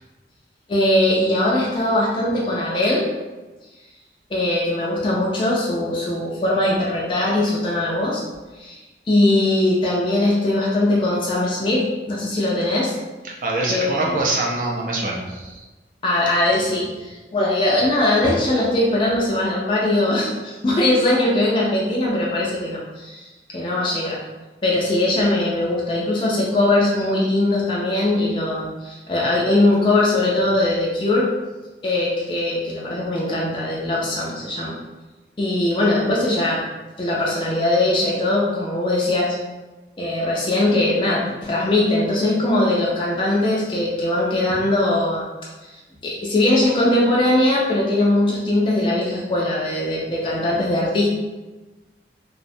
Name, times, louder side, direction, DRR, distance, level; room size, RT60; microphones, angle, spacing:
voice 1, 0.7-3.1 4.3-8.2 8.6-8.8 9.1-12.9 13.7-14.2 16.0-24.2 24.6-31.3 31.8-34.8 35.4-36.6 37.0-39.4 40.0-45.3 45.6-45.7 46.0-51.1, left 1 dB, 30° left, -4 dB, 0.3 m, -20 dB
voice 2, 13.2-15.7, right 2 dB, 45° right, -2 dB, 0.4 m, -24 dB
2.6 x 2.0 x 2.5 m, 1.2 s
head